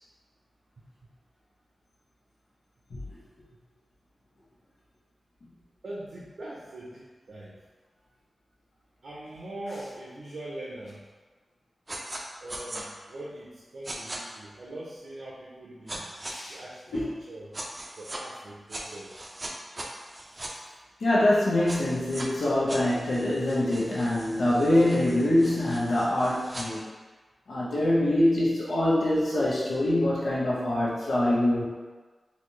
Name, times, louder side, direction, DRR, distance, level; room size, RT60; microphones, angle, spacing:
voice 1, 5.8-7.5 9.0-11.0 12.4-16.0 16.5-17.0 17.3-17.5 18.0-19.1, right 1 dB, 75° right, -6 dB, 0.7 m, -41 dB
sound 1, 11.9-12.2 12.5-12.8 13.8-14.2 15.9-16.3 17.5-18.2 18.7-20.5 21.7-22.3 22.7-26.7, right 1 dB, 30° right, 0.4 m, -40 dB
voice 2, 16.3-16.6 16.9-17.1 21.0-26.8 27.5-31.6, left 1 dB, 90° left, -8 dB, 1.1 m, -24 dB
4.1 x 2.4 x 3.2 m, 1.3 s
wide cardioid pair, 105°, 0 cm